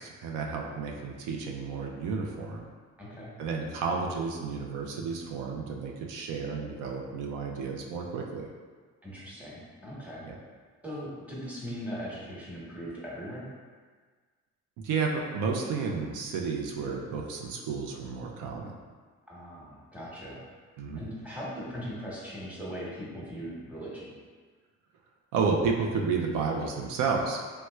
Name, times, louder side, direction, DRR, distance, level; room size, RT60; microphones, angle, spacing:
voice 1, 0.0-2.7 3.4-8.5 10.2-10.3 14.8-18.8 20.8-21.0 25.3-27.4, right 5 dB, 90° right, 0 dB, 0.5 m, -31 dB
voice 2, 3.0-3.3 9.0-10.2 10.8-13.5 19.3-20.4 21.0-24.1, equal, 5° right, -7 dB, 1.0 m, -39 dB
3.2 x 3.0 x 2.2 m, 1.5 s
cardioid pair, 90°, 30 cm